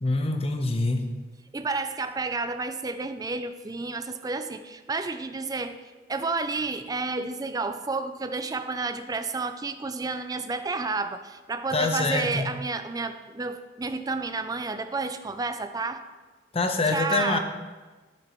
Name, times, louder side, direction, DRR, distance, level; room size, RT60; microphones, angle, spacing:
voice 1, 0.0-1.0 11.7-12.5 16.5-17.4, left 3 dB, 35° left, 5 dB, 0.8 m, -25 dB
voice 2, 1.5-5.8 6.1-16.0 16.9-17.4, right 3 dB, 20° right, 10 dB, 0.4 m, -31 dB
9.9 x 8.7 x 3.1 m, 1.3 s
head